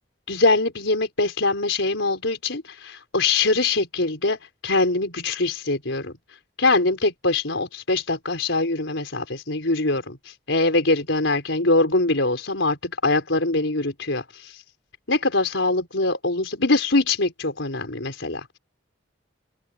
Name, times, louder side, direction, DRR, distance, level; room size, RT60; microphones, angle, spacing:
voice 1, 0.3-6.1 6.6-14.6 15.1-18.4, left 2 dB, 75° left, 4.4 m, -23 dB
open air
head